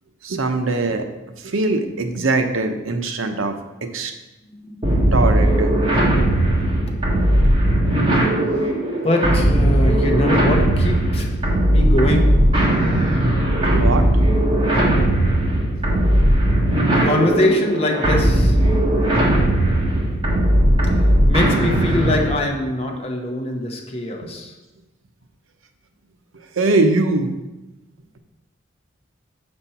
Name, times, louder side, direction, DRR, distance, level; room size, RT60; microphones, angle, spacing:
voice 1, 0.2-1.0 1.4-3.6 3.8-4.1 5.1-5.7 13.7-14.1 19.9-20.0 26.6-27.3, right 2 dB, 90° right, 6 dB, 0.7 m, -21 dB
voice 2, 4.5-5.0 6.9-7.0 8.5-11.4 11.6-12.6 17.0-18.7 20.8-20.9 21.3-24.6, left 1 dB, 30° left, 1 dB, 0.9 m, -23 dB
sound 1, 4.8-22.4, right 1 dB, 25° right, 1.5 m, -17 dB
6.9 x 4.4 x 5.5 m, 1.0 s
head